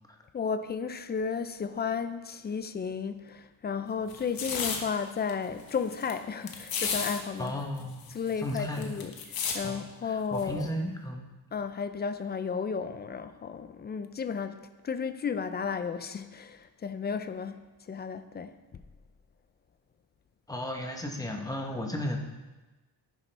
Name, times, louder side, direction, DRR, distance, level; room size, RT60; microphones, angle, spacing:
voice 1, 0.3-7.5 8.1-9.1 9.5-10.7 11.5-14.6 14.8-18.6, left 6 dB, 25° left, 10 dB, 0.4 m, -33 dB
sound 1, 4.1-4.8 5.3-5.4 5.6-6.1 6.5-7.2 7.5-7.6 7.8-9.6 10.4-10.6, left 6 dB, 60° left, 1.3 m, -33 dB
voice 2, 7.4-9.0 9.6-11.2 20.5-22.2, left 1 dB, 10° left, 2 dB, 0.9 m, -35 dB
10.5 x 10.0 x 3.4 m, 1.2 s
wide cardioid pair, 175°, 41 cm